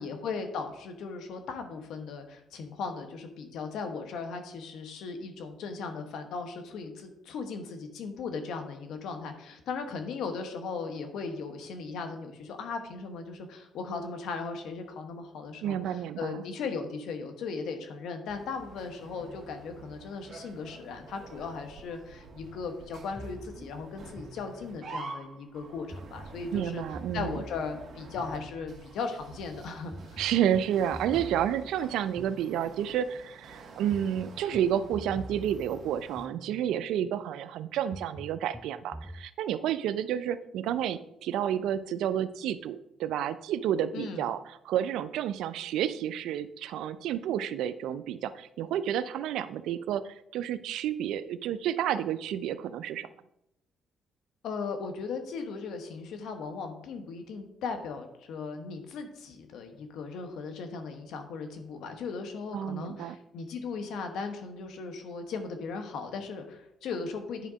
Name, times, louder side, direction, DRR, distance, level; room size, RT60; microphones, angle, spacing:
voice 1, 0.0-26.8 27.1-30.2 43.9-44.2 54.4-67.5, left 4 dB, 80° left, 6 dB, 1.2 m, -37 dB
voice 2, 15.6-16.4 26.5-27.4 30.2-53.1 62.5-63.2, right 10 dB, 85° right, 13 dB, 0.4 m, -30 dB
sound 1, 18.3-36.3, right 3 dB, 55° right, 1.6 m, -48 dB
sound 2, 23.2-25.0 25.9-29.0 29.9-33.0 33.9-37.0 37.9-39.3, equal, ahead, 0.3 m, -46 dB
10.0 x 3.6 x 5.1 m, 0.83 s
cardioid pair, 100°, 0 cm